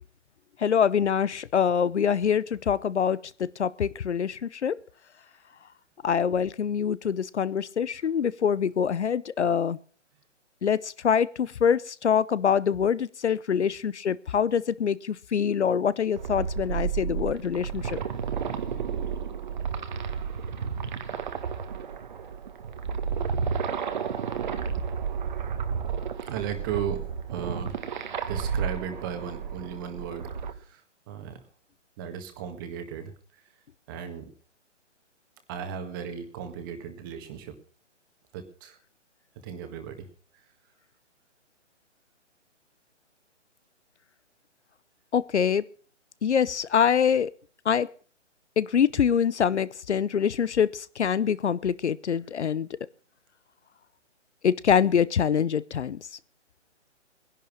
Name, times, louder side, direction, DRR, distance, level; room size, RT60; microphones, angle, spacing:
voice 1, 0.6-4.7 6.0-9.8 10.6-18.0 45.1-45.6 46.2-47.3 47.7-47.9 48.6-52.7 54.4-56.0, left 7 dB, 65° left, 0.8 m, -25 dB
sound 1, 16.2-30.5, right 6 dB, 40° right, 1.5 m, -32 dB
voice 2, 26.2-27.8 28.3-31.4 32.0-33.4 33.9-34.3 35.5-37.5 38.3-38.8 39.4-40.1, right 8 dB, 20° right, 1.7 m, -36 dB
18.5 x 11.0 x 6.0 m
hypercardioid pair, 160°, 37 cm